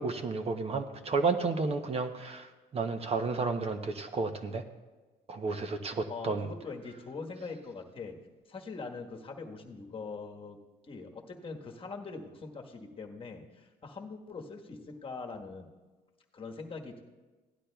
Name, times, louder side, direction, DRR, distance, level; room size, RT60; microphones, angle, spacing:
voice 1, 0.0-4.6 5.3-6.5, right 4 dB, 35° right, 8 dB, 0.8 m, -32 dB
voice 2, 6.1-8.2 8.5-10.6 10.8-15.7 16.3-17.0, left 4 dB, 30° left, 2 dB, 1.4 m, -42 dB
17.0 x 11.5 x 2.3 m, 1.3 s
cardioid pair, 110°, 17 cm